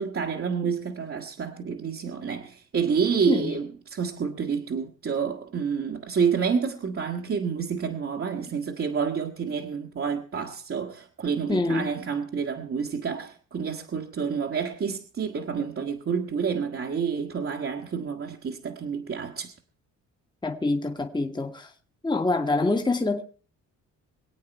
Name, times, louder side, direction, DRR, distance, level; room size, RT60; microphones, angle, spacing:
voice 1, 0.0-19.5, right 6 dB, 45° right, 1.6 m, -29 dB
voice 2, 11.5-11.9 20.4-21.7 22.0-23.2, left 2 dB, 15° left, 1.5 m, -25 dB
23.5 x 8.6 x 4.5 m
cardioid pair, 90°, 30 cm